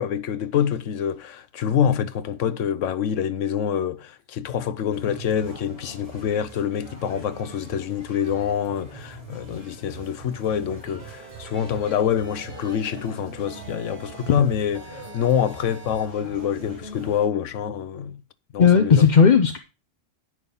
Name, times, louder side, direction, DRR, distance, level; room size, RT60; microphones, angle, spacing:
voice 1, 0.0-18.2 18.5-19.1, left 8 dB, 75° left, 1.1 m, -26 dB
sound 1, 4.9-17.3, right 2 dB, 25° right, 4.0 m, -42 dB
sound 2, 11.0-11.8 12.2-13.1 13.5-14.3 14.7-16.1, right 4 dB, 50° right, 1.6 m, -46 dB
voice 2, 18.6-19.6, left 6 dB, 45° left, 0.7 m, -15 dB
9.7 x 6.3 x 5.3 m
omnidirectional pair, 1.3 m